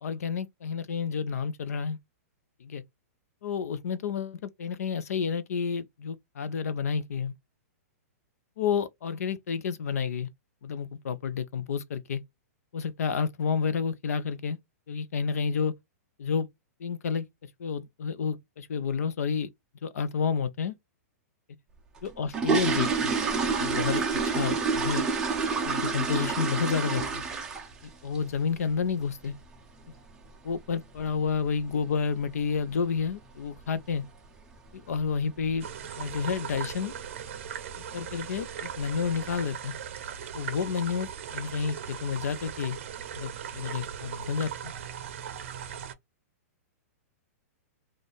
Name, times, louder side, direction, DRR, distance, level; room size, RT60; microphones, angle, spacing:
voice 1, 0.0-2.0 2.6-2.8 3.4-7.3 8.6-10.3 10.6-12.2 12.7-14.6 14.9-15.7 16.2-16.5 16.8-17.2 17.6-19.5 19.8-20.7 22.0-23.1 23.6-25.0 25.6-27.2 28.0-29.3 30.4-34.0 34.7-35.7 36.0-36.9 37.9-39.7 40.3-42.8 43.1-44.7, left 6 dB, 70° left, 0.6 m, -30 dB
sound 1, 22.0-27.9 28.1-28.4 28.8-28.9 29.2-29.4 29.8-30.0 30.2-30.3 30.9-31.0 31.3-31.4 32.0-32.3 32.5-32.6 33.0-33.3 33.6-33.7 34.1-34.2 34.8-35.1 35.5-35.8 36.1-36.2 36.7-36.8 37.5-37.7 38.1-38.6 39.0-39.1, right 5 dB, 10° right, 0.5 m, -28 dB
sound 2, 35.6-45.9, right 8 dB, 50° right, 0.6 m, -39 dB
4.2 x 2.4 x 3.3 m
hypercardioid pair, 170°, 9 cm